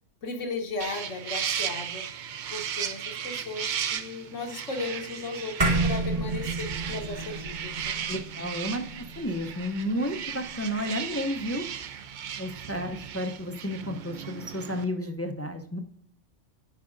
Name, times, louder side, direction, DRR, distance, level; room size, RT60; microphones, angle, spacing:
voice 1, 0.2-2.1 2.5-8.1 8.6-8.8, left 3 dB, 80° left, 3 dB, 1.5 m, -36 dB
sound 1, 0.8-14.8, right 8 dB, 60° right, 0.5 m, -36 dB
sound 2, 5.6-10.2, right 2 dB, 35° right, 0.9 m, -30 dB
voice 2, 8.1-11.7 12.4-15.8, equal, 25° left, 4 dB, 0.3 m, -32 dB
9.8 x 4.8 x 2.5 m, 0.66 s
omnidirectional pair, 1.3 m